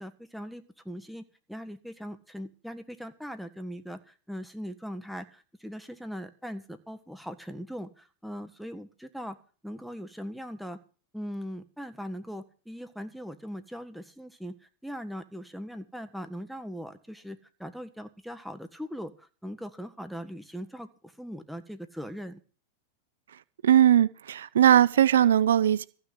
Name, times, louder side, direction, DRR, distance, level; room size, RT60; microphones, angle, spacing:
voice 1, 0.0-9.4 9.6-10.8 11.1-14.6 14.8-22.4, equal, ahead, 1.6 m, -40 dB
voice 2, 23.6-25.9, right 10 dB, 85° right, 0.6 m, -20 dB
15.0 x 6.2 x 8.1 m
hypercardioid pair, 115°, 0 cm